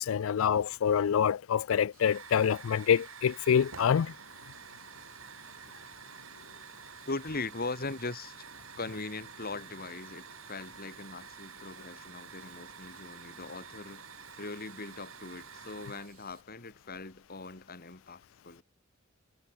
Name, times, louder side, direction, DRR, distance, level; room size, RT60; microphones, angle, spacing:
voice 1, 0.0-4.1, left 8 dB, 70° left, 0.4 m, -26 dB
Hiss / Fire, 1.9-16.4, right 6 dB, 75° right, 5.0 m, -49 dB
voice 2, 7.1-8.3 8.8-14.0 14.4-18.6, left 3 dB, 45° left, 2.7 m, -40 dB
head